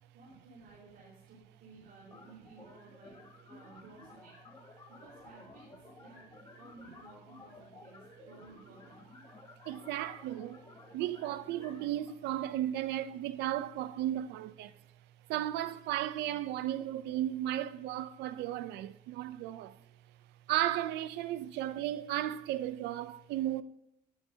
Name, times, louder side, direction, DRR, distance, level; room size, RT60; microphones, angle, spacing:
voice 1, 0.1-4.4 4.9-9.2, right 3 dB, 70° right, 4.8 m, -56 dB
sound 1, 2.1-12.1, left 2 dB, 25° left, 3.2 m, -55 dB
voice 2, 9.7-10.6 10.9-14.7 15.3-19.8 20.5-23.6, right 13 dB, 85° right, 0.7 m, -34 dB
18.5 x 9.5 x 2.9 m
cardioid pair, 110°, 17 cm